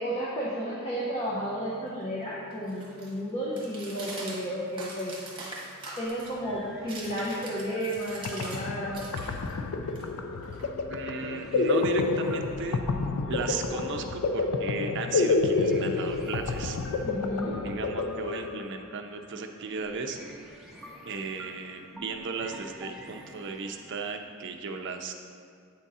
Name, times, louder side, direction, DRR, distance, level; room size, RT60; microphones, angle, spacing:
voice 1, 0.0-5.2 6.0-9.0 17.0-17.6, equal, 25° left, -6 dB, 0.8 m, -32 dB
sound 1, 1.3-8.6 8.9-11.1, right 2 dB, 25° right, 1.2 m, -44 dB
sound 2, 6.1-24.2, equal, ahead, 0.6 m, -48 dB
sound 3, 8.0-8.1 8.2-18.9, left 3 dB, 85° left, 0.4 m, -29 dB
voice 2, 10.9-12.8 13.3-16.8 17.4-20.2 21.1-25.1, right 4 dB, 55° right, 4 dB, 0.5 m, -36 dB
8.5 x 3.6 x 4.1 m, 2.3 s
head